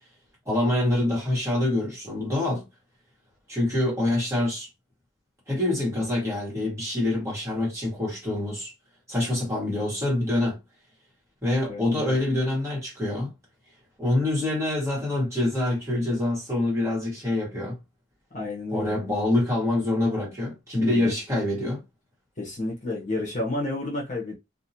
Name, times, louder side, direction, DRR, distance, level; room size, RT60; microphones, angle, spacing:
voice 1, 0.5-2.6 3.5-4.7 5.5-8.7 9.1-10.6 11.4-13.3 14.0-17.8 18.7-21.8, left 1 dB, 15° right, 1.2 m, -25 dB
voice 2, 11.7-12.2 18.3-19.0 20.8-21.2 22.4-24.4, left 2 dB, 40° left, 0.9 m, -31 dB
2.7 x 2.2 x 2.7 m
head